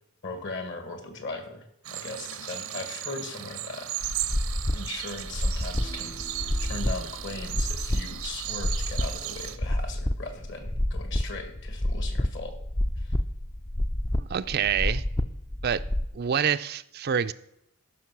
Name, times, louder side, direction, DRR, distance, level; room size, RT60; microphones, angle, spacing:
voice 1, 0.2-3.9 4.2-4.3 4.7-6.2 6.7-12.6 13.0-13.1, left 3 dB, 55° left, 7 dB, 1.9 m, -38 dB
sound 1, 1.8-9.6, right 12 dB, 85° right, 0.8 m, -36 dB
sound 2, 4.0-16.1, left 1 dB, 15° left, 0.4 m, -29 dB
Human voice, 5.7-10.3 10.6-10.7, equal, 75° left, 3.0 m, -52 dB
voice 2, 14.2-15.0 15.6-15.8 16.1-17.3, right 8 dB, 45° right, 12 dB, 0.4 m, -26 dB
14.0 x 6.0 x 6.0 m, 0.81 s
head